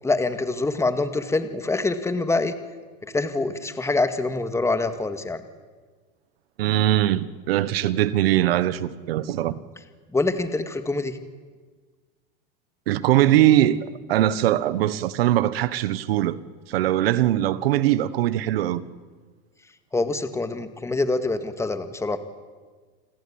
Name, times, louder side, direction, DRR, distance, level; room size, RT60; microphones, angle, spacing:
voice 1, 0.0-2.5 3.0-5.4 10.1-11.2 19.9-22.2, left 3 dB, 10° left, 2.1 m, -25 dB
voice 2, 6.6-9.6 12.9-16.4 16.7-18.8, right 13 dB, 85° right, 1.4 m, -21 dB
29.0 x 21.5 x 8.9 m
supercardioid pair, 120°, 29 cm